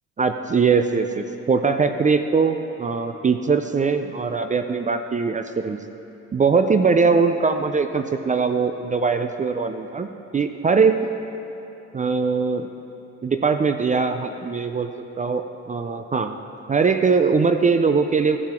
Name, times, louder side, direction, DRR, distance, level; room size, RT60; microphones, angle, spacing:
voice 1, 0.2-5.8 6.3-10.1 10.3-11.1 11.9-12.7 13.2-14.9 15.2-16.4 16.7-18.4, right 5 dB, 25° right, 7 dB, 0.4 m, -21 dB
14.5 x 5.8 x 4.4 m, 2.9 s
cardioid pair, 90°, 30 cm